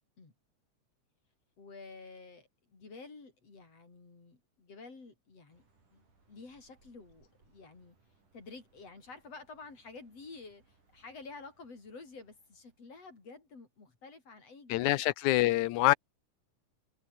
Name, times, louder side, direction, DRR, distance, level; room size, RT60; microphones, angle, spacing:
voice 1, 1.6-5.6 5.9-8.0 8.3-15.0, left 4 dB, 50° left, 6.8 m, -50 dB
sound 1, 5.5-13.3, right 3 dB, 85° right, 9.3 m, -70 dB
voice 2, 14.7-15.9, left 17 dB, 75° left, 2.1 m, -26 dB
omnidirectional pair, 3.5 m